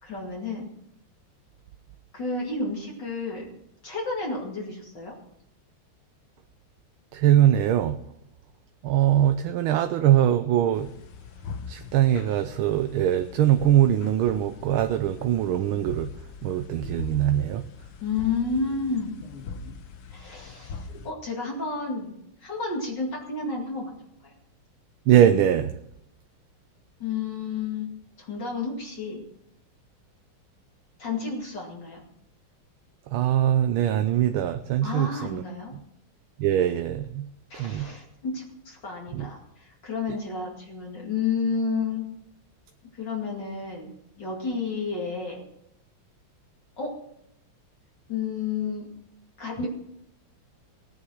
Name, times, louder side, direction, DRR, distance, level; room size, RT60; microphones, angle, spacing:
voice 1, 0.0-0.6 2.1-3.5 3.8-5.1 18.0-19.1 20.1-23.9 24.2-24.3 27.0-27.9 28.2-29.2 31.0-32.0 34.8-35.7 37.5-42.0 42.9-45.4 46.8-46.9 48.1-48.9 49.4-49.7, left 4 dB, 55° left, -2 dB, 3.0 m, -31 dB
voice 2, 7.1-8.0 8.8-10.9 11.7-16.1 16.4-17.6 25.1-25.7 33.1-35.4 36.4-37.3 37.6-37.9 39.1-39.3, right 11 dB, 80° right, 8 dB, 1.5 m, -22 dB
sound 1, 10.7-21.1, left 5 dB, 85° left, 2.0 m, -42 dB
17.0 x 9.7 x 6.3 m, 0.77 s
omnidirectional pair, 2.3 m